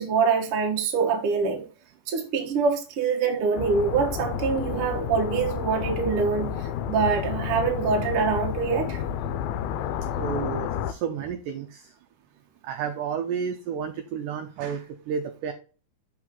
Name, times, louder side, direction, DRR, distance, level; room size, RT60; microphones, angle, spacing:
voice 1, 0.0-1.6 2.1-9.0, right 5 dB, 65° right, 1.3 m, -25 dB
sound 1, 3.6-10.9, left 9 dB, 80° left, 2.3 m, -30 dB
voice 2, 10.1-11.9 12.6-15.5, right 7 dB, 85° right, 1.8 m, -31 dB
6.1 x 5.5 x 3.7 m
omnidirectional pair, 4.3 m